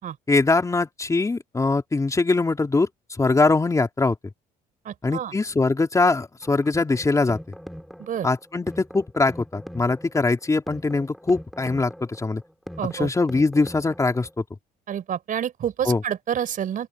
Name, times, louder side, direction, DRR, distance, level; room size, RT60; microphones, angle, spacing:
voice 1, 0.3-4.2 5.0-7.4 8.2-12.4 12.9-14.4 15.8-16.0, left 3 dB, 20° left, 3.5 m, -22 dB
voice 2, 4.8-5.3 8.0-8.3 12.8-13.1 14.9-16.9, right 9 dB, 55° right, 4.6 m, -28 dB
sound 1, 6.4-14.4, equal, ahead, 3.2 m, -41 dB
open air
cardioid pair, 110°, 17 cm